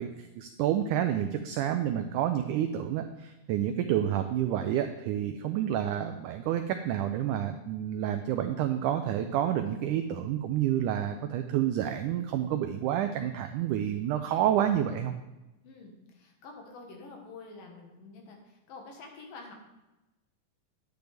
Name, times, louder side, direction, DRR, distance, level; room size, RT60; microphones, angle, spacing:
voice 1, 0.0-15.1, right 10 dB, 90° right, 7 dB, 1.7 m, -29 dB
voice 2, 15.6-19.5, left 3 dB, 70° left, 1 dB, 3.2 m, -48 dB
10.5 x 9.2 x 3.4 m, 1.0 s
omnidirectional pair, 4.2 m